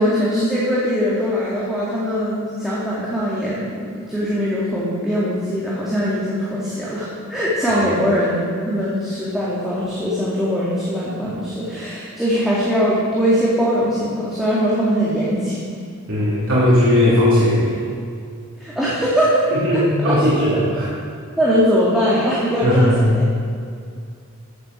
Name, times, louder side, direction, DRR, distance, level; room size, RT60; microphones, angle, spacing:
voice 1, 0.0-15.6 18.6-20.1 20.5-20.6 21.4-23.2, equal, ahead, -8 dB, 2.2 m, -21 dB
voice 2, 7.7-8.0 16.1-17.9 19.6-20.9 22.6-23.0, left 1 dB, 65° right, -9 dB, 3.5 m, -17 dB
14.5 x 7.9 x 6.2 m, 2.3 s
head